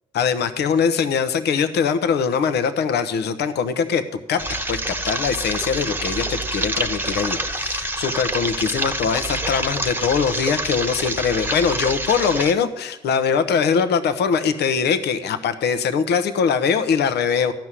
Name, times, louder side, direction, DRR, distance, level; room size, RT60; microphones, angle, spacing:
voice 1, 0.1-4.0 4.3-4.4 4.7-17.5, left 6 dB, 70° left, 9 dB, 1.0 m, -22 dB
sound 1, 4.4-12.5, right 1 dB, 10° right, 1.2 m, -26 dB
13.0 x 6.1 x 9.7 m, 0.96 s
hypercardioid pair, 50°, 18 cm